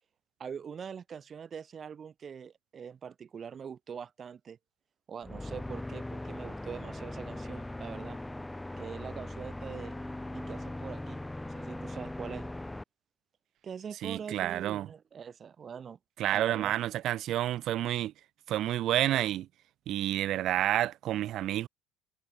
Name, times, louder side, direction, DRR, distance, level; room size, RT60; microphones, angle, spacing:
voice 1, 0.4-4.6 5.1-8.2 8.8-9.9 10.3-12.5 13.6-16.0 16.3-16.7, right 7 dB, 35° right, 1.3 m, -43 dB
sound 1, 5.2-12.8, left 1 dB, 5° left, 2.5 m, -40 dB
voice 2, 14.0-14.9 16.2-18.1 18.5-19.5 19.9-21.7, right 13 dB, 55° right, 1.4 m, -29 dB
cardioid pair, 120°, 0 cm